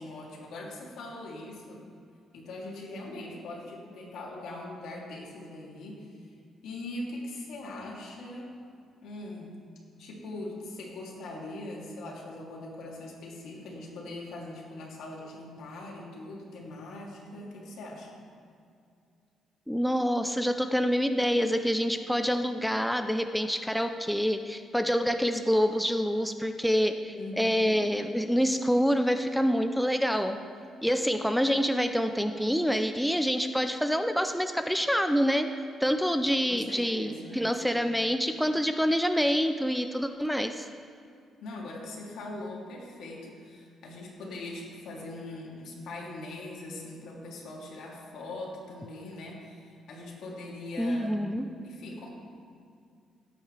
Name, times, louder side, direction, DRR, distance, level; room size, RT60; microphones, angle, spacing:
voice 1, 0.0-1.8 2.3-6.1 6.6-8.5 9.0-9.6 10.0-18.2 27.1-27.9 36.5-37.5 41.4-51.1 51.6-52.1, left 2 dB, 80° left, -3 dB, 2.8 m, -41 dB
voice 2, 19.7-30.4 30.8-35.5 35.8-40.7 50.8-51.4, equal, ahead, 7 dB, 0.5 m, -26 dB
17.5 x 8.6 x 3.3 m, 2.4 s
cardioid pair, 90°, 0 cm